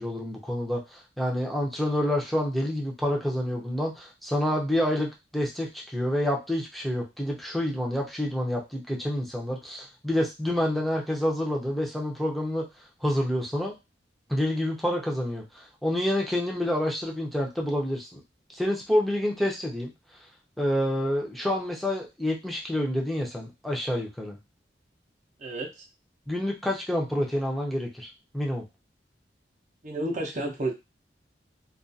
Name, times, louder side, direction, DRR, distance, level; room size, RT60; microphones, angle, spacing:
voice 1, 0.0-12.7 13.0-13.7 14.3-18.2 18.5-19.9 20.6-24.4 26.3-28.6, left 1 dB, ahead, -1 dB, 0.6 m, -28 dB
voice 2, 29.8-30.7, right 1 dB, 45° right, 1 dB, 0.6 m, -30 dB
2.3 x 2.3 x 2.6 m, 0.24 s
head